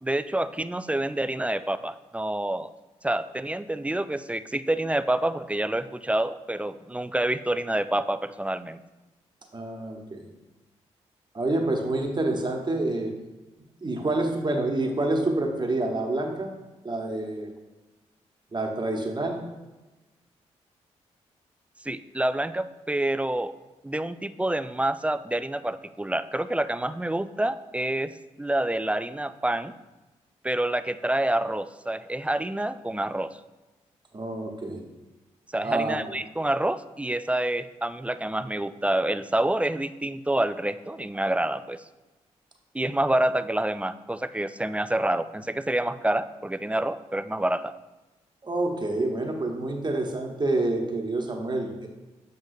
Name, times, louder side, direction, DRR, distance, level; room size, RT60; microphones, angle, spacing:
voice 1, 0.0-2.7 3.0-8.8 21.9-23.5 23.8-28.1 28.4-29.7 30.4-33.4 35.5-41.8 42.7-47.8, right 1 dB, 10° right, 13 dB, 0.3 m, -27 dB
voice 2, 9.5-10.3 11.3-13.1 13.8-16.5 16.8-17.5 18.5-19.4 34.1-34.8 35.6-36.2 48.4-51.9, right 2 dB, 35° right, 2 dB, 1.1 m, -27 dB
7.9 x 5.3 x 2.7 m, 1.1 s
supercardioid pair, 45°, 14 cm